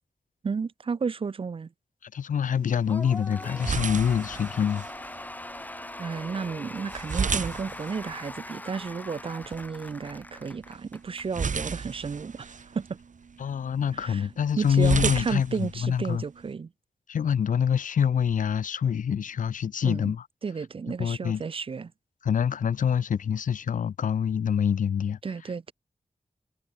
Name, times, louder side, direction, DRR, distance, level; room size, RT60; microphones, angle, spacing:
voice 1, 0.4-1.7 6.0-13.0 13.9-14.3 14.6-16.7 19.8-20.1 20.4-21.9 25.2-25.7, right 5 dB, 45° right, 0.4 m, -32 dB
voice 2, 2.0-4.8 13.4-15.5 15.8-16.2 17.1-20.2 21.0-21.4 22.2-25.2, left 8 dB, 90° left, 0.4 m, -25 dB
sound 1, 2.5-16.5, right 5 dB, 75° right, 1.0 m, -35 dB
Cheering / Applause / Crowd, 2.9-11.5, left 1 dB, 15° left, 0.7 m, -41 dB
wide cardioid pair, 90°, 13 cm